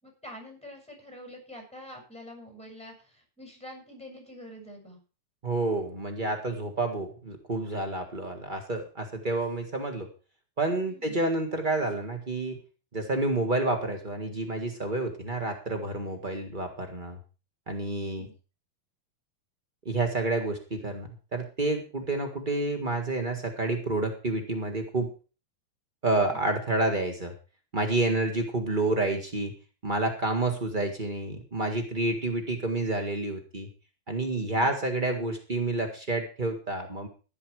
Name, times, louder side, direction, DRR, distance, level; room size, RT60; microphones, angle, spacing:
voice 1, 0.0-5.0 10.9-11.2 18.0-18.3 26.3-26.4 34.5-34.7, equal, ahead, 2 dB, 6.8 m, -46 dB
voice 2, 5.4-10.1 10.6-12.6 12.9-17.2 17.7-18.3 19.8-25.1 26.0-27.3 27.7-29.5 29.8-33.7 34.1-37.1, right 2 dB, 90° right, 5 dB, 0.4 m, -29 dB
15.5 x 10.0 x 4.8 m, 0.35 s
omnidirectional pair, 4.2 m